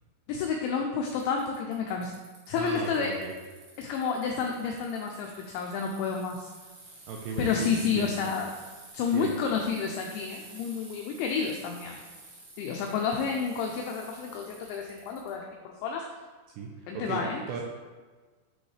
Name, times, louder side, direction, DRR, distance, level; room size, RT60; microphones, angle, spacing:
voice 1, 0.3-2.1 2.5-3.1 3.8-6.5 7.4-8.5 8.9-12.0 12.6-16.0 16.9-17.6, left 6 dB, 85° left, 1 dB, 2.6 m, -30 dB
Bicycle, 1.2-15.3, right 2 dB, 55° right, 2.2 m, -51 dB
voice 2, 2.5-3.3 7.1-8.2 9.1-9.3 16.6-17.6, right 5 dB, 85° right, 0 dB, 2.6 m, -36 dB
9.9 x 5.2 x 3.3 m, 1.4 s
omnidirectional pair, 5.9 m